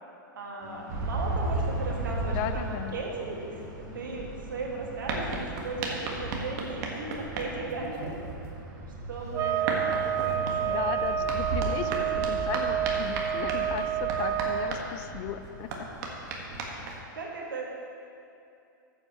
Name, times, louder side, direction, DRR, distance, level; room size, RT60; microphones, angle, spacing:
voice 1, 0.3-8.2 9.1-11.3 11.8-12.3 17.1-17.7, right 3 dB, 75° right, -2 dB, 2.0 m, -37 dB
sound 1, 0.6-15.7, left 2 dB, 5° left, 2.3 m, -53 dB
sound 2, 0.9-17.0, right 2 dB, 50° right, 1.6 m, -35 dB
voice 2, 2.3-3.0 10.6-15.9, left 11 dB, 45° left, 11 dB, 0.5 m, -36 dB
sound 3, 9.3-14.8, right 10 dB, 25° right, 0.4 m, -29 dB
13.5 x 7.7 x 3.1 m, 2.6 s
hypercardioid pair, 105°, 11 cm